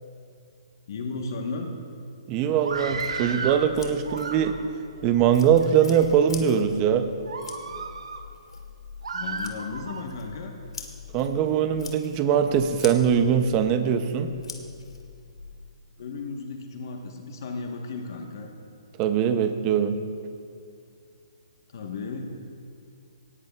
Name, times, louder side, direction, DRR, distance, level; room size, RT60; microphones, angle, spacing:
voice 1, 0.9-1.7 9.1-10.5 16.0-18.5 21.7-22.4, left 3 dB, 40° left, 2 dB, 1.1 m, -34 dB
voice 2, 2.3-4.6 5.0-7.1 11.1-14.3 19.0-20.0, right 8 dB, 15° right, 9 dB, 0.5 m, -22 dB
Screaming, 2.6-3.7 4.0-4.8 5.5-6.0 6.6-6.7 7.3-8.2 9.0-10.1, right 4 dB, 85° right, 1.2 m, -34 dB
sound 1, 2.7-15.7, left 5 dB, 70° left, 1.8 m, -43 dB
18.5 x 16.0 x 2.3 m, 2.4 s
hypercardioid pair, 175°, 3 cm